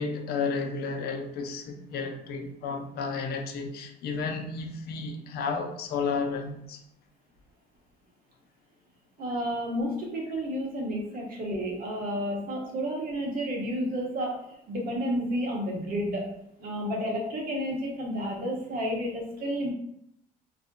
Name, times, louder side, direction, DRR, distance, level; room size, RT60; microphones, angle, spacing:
voice 1, 0.0-6.8, left 4 dB, 70° left, 4 dB, 0.5 m, -32 dB
voice 2, 9.2-14.4 14.7-16.3 16.6-19.7, equal, 60° right, -1 dB, 1.0 m, -31 dB
2.5 x 2.1 x 3.7 m, 0.72 s
cardioid pair, 110°, 17 cm